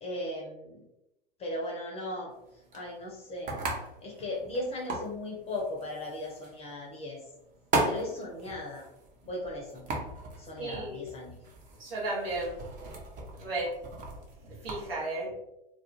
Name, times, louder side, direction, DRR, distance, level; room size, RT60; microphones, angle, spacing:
voice 1, 0.0-0.8 1.4-2.3 2.7-3.6 4.0-7.2 7.8-8.8 9.2-9.8 10.4-11.4, left 1 dB, 20° left, -2 dB, 0.5 m, -37 dB
sound 1, 2.3-14.8, right 2 dB, 25° right, 0.6 m, -38 dB
voice 2, 10.6-11.0 11.8-12.6 13.3-13.7 14.5-15.3, right 2 dB, 80° right, -6 dB, 0.9 m, -34 dB
2.3 x 2.1 x 2.9 m, 0.84 s
figure-of-eight pair, 90°, 30 cm